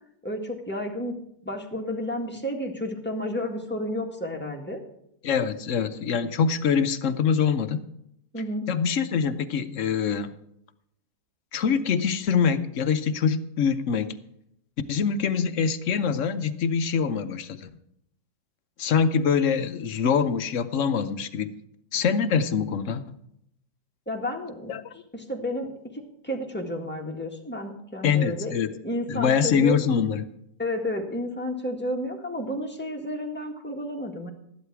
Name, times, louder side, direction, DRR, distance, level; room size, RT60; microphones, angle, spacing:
voice 1, 0.2-1.1 1.4-4.8 8.3-8.7 24.1-24.7 25.1-28.5 28.8-29.8 30.6-34.3, left 1 dB, 5° left, 1 dB, 1.7 m, -31 dB
voice 2, 5.2-7.8 8.7-10.3 11.5-14.2 14.9-17.7 18.8-21.5 21.9-23.0 24.7-24.9 28.0-28.7 29.1-30.2, left 6 dB, 60° left, 10 dB, 0.9 m, -24 dB
12.5 x 11.5 x 4.7 m, 0.74 s
omnidirectional pair, 1.8 m